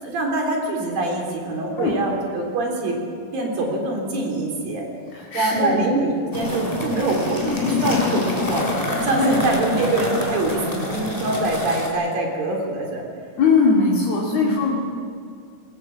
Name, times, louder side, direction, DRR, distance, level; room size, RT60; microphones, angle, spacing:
voice 1, 0.0-3.0 3.3-4.9 5.3-8.7 9.0-13.0 14.3-14.6, right 2 dB, 65° right, 0 dB, 5.2 m, -24 dB
voice 2, 5.1-5.8 9.2-9.4 13.4-14.8, left 4 dB, 50° left, -3 dB, 3.1 m, -20 dB
sound 1, 6.3-11.9, equal, 10° left, 3.9 m, -27 dB
sound 2, 7.2-10.3, left 8 dB, 80° left, 3.3 m, -28 dB
22.0 x 20.5 x 7.4 m, 2.2 s
omnidirectional pair, 4.3 m